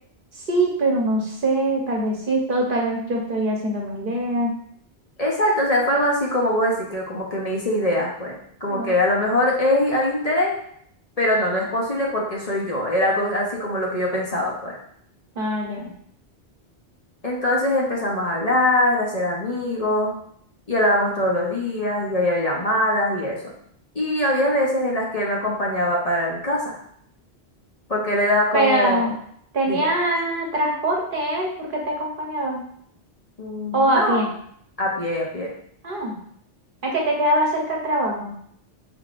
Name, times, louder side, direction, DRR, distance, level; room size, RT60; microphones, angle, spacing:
voice 1, 0.5-4.6 8.7-8.9 15.4-15.9 28.5-29.1 29.5-32.6 33.7-34.3 35.8-36.2 36.8-38.3, right 1 dB, 55° right, 0 dB, 0.9 m, -23 dB
voice 2, 5.2-10.6 11.2-14.8 17.2-20.1 20.7-23.4 23.9-26.8 27.9-29.1 29.7-29.9 33.4-34.2 34.8-35.5, left 1 dB, 40° left, -3 dB, 0.9 m, -22 dB
5.0 x 4.0 x 2.4 m, 0.66 s
omnidirectional pair, 1.1 m